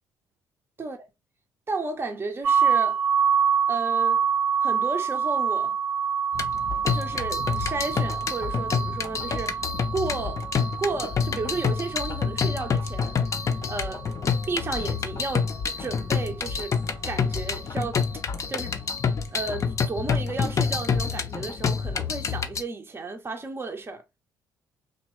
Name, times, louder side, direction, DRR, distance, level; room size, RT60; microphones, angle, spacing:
voice 1, 1.7-3.0 3.7-4.2 4.6-5.8 6.9-9.6 9.9-10.4 10.8-13.2 13.7-14.0 14.5-15.5 15.8-16.8 17.1-18.0 18.5-18.8 19.3-24.0, right 3 dB, 25° right, 0.6 m, -33 dB
sound 1, 2.4-14.2, right 7 dB, 65° right, 0.9 m, -27 dB
sound 2, 6.3-22.6, left 6 dB, 30° left, 0.5 m, -28 dB
2.9 x 2.2 x 3.0 m
figure-of-eight pair, 45°, 10 cm